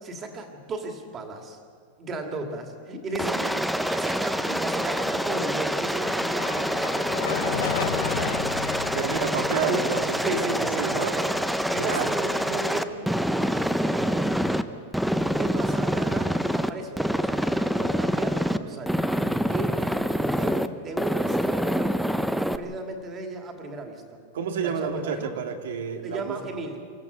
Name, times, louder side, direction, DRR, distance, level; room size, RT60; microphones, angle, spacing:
voice 1, 0.0-1.6 2.0-7.2 7.4-8.7 9.5-9.9 10.2-11.4 11.7-14.5 15.4-19.1 19.5-19.9 20.3-21.9 22.6-24.0 24.6-25.4 26.0-26.8, right 3 dB, 20° right, 4 dB, 2.3 m, -35 dB
Aircraft, 3.1-14.6 14.9-16.7 17.0-18.6 18.9-20.7 21.0-22.6, equal, ahead, 0.6 m, -26 dB
sound 1, 5.3-13.7, left 11 dB, 80° left, 0.5 m, -36 dB
voice 2, 8.9-11.2 11.8-12.1 24.3-26.3, right 6 dB, 90° right, 5 dB, 2.3 m, -30 dB
25.5 x 14.0 x 8.1 m, 2.1 s
supercardioid pair, 165°, 0 cm